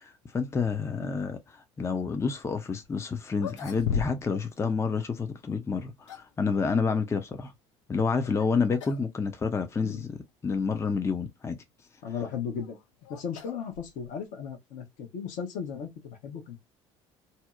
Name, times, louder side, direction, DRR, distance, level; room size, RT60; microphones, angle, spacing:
voice 1, 0.3-7.5 7.9-10.2 10.4-11.6, left 5 dB, 20° left, 0.5 m, -29 dB
sound 1, 2.8-2.9 3.3-4.4 4.7-4.8 5.7-6.4 8.2-8.5 8.8-9.1 9.4-9.5 10.3-10.4 12.2-14.3, left 6 dB, 80° left, 0.5 m, -37 dB
voice 2, 12.0-12.8 13.1-16.6, left 7 dB, 60° left, 0.9 m, -36 dB
2.7 x 2.0 x 2.3 m
hypercardioid pair, 60°, 15 cm